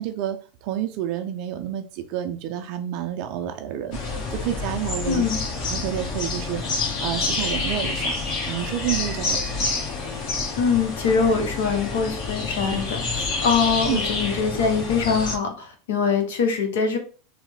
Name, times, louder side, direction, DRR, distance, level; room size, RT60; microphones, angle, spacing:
voice 1, 0.0-5.3 5.6-8.2 8.5-9.7 13.9-14.0, right 11 dB, 60° right, 7 dB, 0.4 m, -29 dB
sound 1, 3.9-15.3, left 3 dB, 55° left, 1.1 m, -28 dB
voice 2, 5.0-5.4 10.6-17.0, left 5 dB, 75° left, 5 dB, 0.8 m, -23 dB
3.2 x 2.0 x 3.2 m, 0.38 s
hypercardioid pair, 100°, 0 cm